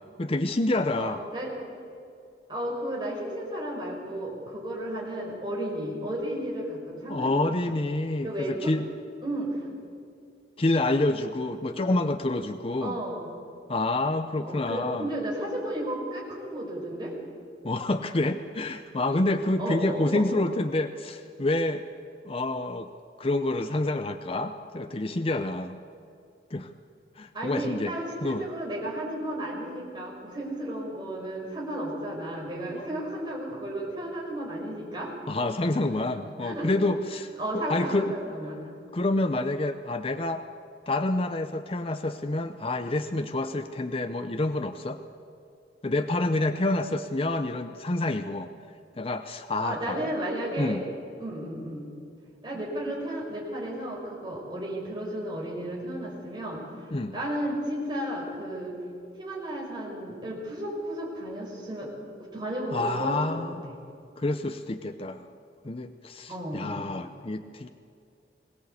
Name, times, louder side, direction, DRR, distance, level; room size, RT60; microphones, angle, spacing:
voice 1, 0.2-1.2 7.1-8.9 10.6-13.0 13.7-15.1 17.6-21.8 22.3-22.9 23.2-25.8 26.5-26.7 27.2-27.9 28.2-28.5 32.7-32.9 35.3-38.1 38.9-40.4 40.9-45.0 45.8-48.5 49.0-50.1 50.6-50.8 56.9-57.2 62.7-63.7 64.2-65.3 65.6-67.7, left 2 dB, 30° left, 8 dB, 0.6 m, -28 dB
voice 2, 1.0-1.5 2.5-7.5 8.2-8.7 9.2-9.6 11.7-11.9 12.8-13.3 14.4-17.1 19.6-20.2 27.3-35.1 35.9-36.0 36.4-36.7 37.4-38.6 49.6-50.8 51.2-51.9 52.4-56.6 57.1-58.8 59.2-61.9 62.3-63.2 66.3-66.7, right 1 dB, 25° right, -3 dB, 5.5 m, -33 dB
21.5 x 17.5 x 8.3 m, 2.5 s
head